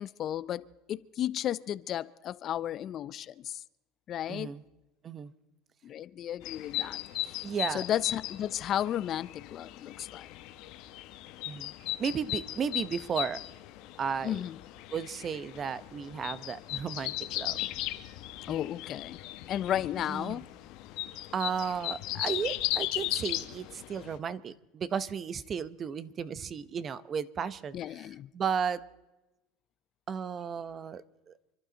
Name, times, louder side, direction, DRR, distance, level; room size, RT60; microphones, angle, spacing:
voice 1, 0.0-3.6 4.1-4.5 5.8-7.4 7.7-10.3 14.2-14.6 18.5-19.2 19.5-20.5 27.7-28.3, left 11 dB, 40° left, 0.4 m, -34 dB
voice 2, 4.3-4.6 5.0-5.3 7.4-7.8 11.5-11.7 12.0-13.4 14.0-14.4 14.9-17.6 18.5-18.6 20.1-20.4 21.3-28.1 28.3-28.8 30.1-31.3, right 7 dB, 30° right, 0.8 m, -34 dB
sound 1, 6.4-24.2, left 16 dB, 65° left, 1.1 m, -37 dB
28.0 x 12.0 x 4.0 m
supercardioid pair, 125°, 0 cm